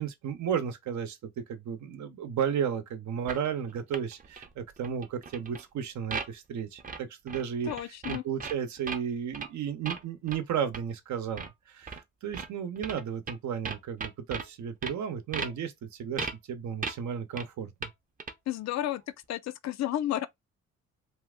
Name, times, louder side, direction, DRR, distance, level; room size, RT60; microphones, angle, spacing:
voice 1, 0.0-7.7 8.1-17.9, right 8 dB, 70° right, 0.8 m, -34 dB
sound 1, 3.3-5.6 6.1-6.3 6.8-7.0 7.3-9.0 9.3-9.5 9.8-10.0 10.3-10.4 10.7-10.8 11.4-11.5 11.9-12.0 12.3-12.5 12.8-13.3 13.6-14.5 14.8-14.9 15.3-15.5 16.2-16.3 16.8-17.0 17.4-17.5 17.8-17.9 18.2-18.3, right 4 dB, 30° right, 0.7 m, -36 dB
voice 2, 7.7-8.2 18.5-19.0 19.3-20.3, left 12 dB, 65° left, 0.5 m, -31 dB
2.8 x 2.5 x 3.6 m
cardioid pair, 90°, 30 cm